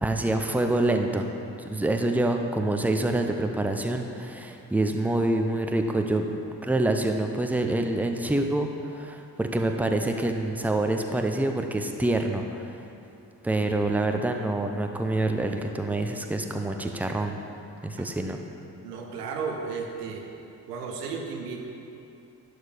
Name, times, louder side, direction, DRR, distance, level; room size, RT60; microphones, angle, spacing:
voice 1, 0.0-1.3 1.6-6.3 6.6-12.8 13.4-17.4 17.8-18.4, right 2 dB, 5° right, 4 dB, 0.8 m, -26 dB
voice 2, 18.8-20.3 20.7-21.6, right 5 dB, 85° right, 1 dB, 0.8 m, -33 dB
11.0 x 4.9 x 5.2 m, 2.7 s
hypercardioid pair, 40°, 46 cm